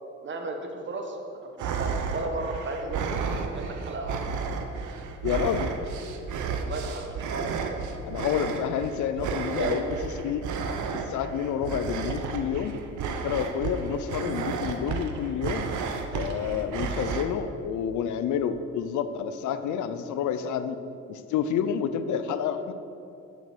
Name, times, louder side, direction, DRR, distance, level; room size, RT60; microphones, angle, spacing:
voice 1, 0.2-1.2 1.4-3.2 3.5-4.2 6.6-7.8 9.4-9.8, right 2 dB, 40° right, 3 dB, 1.2 m, -34 dB
sound 1, 1.6-17.2, right 5 dB, 75° right, 0.8 m, -32 dB
voice 2, 5.2-5.7 8.1-10.4 11.1-12.7 13.2-15.7 16.1-20.8 21.1-22.7, left 8 dB, 75° left, 11 dB, 0.6 m, -29 dB
6.9 x 6.8 x 6.0 m, 2.7 s
cardioid pair, 90°, 30 cm